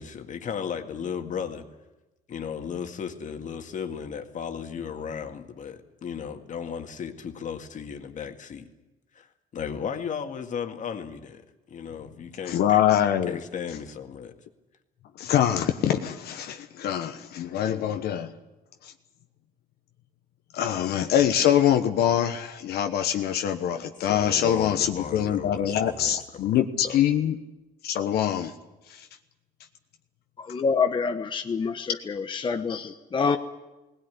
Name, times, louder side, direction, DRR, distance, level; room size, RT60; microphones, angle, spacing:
voice 1, 0.0-1.6 2.3-8.7 9.1-9.3 9.5-11.4 11.7-12.8 13.2-14.4 23.7-27.0, left 7 dB, 50° left, 5 dB, 2.0 m, -35 dB
voice 2, 12.5-13.4 15.2-18.3 20.5-27.4 27.8-28.5, left 10 dB, 70° left, 6 dB, 1.2 m, -24 dB
voice 3, 30.4-33.4, left 5 dB, 30° left, 6 dB, 1.0 m, -27 dB
19.0 x 17.0 x 9.7 m, 1.1 s
cardioid pair, 110°, 17 cm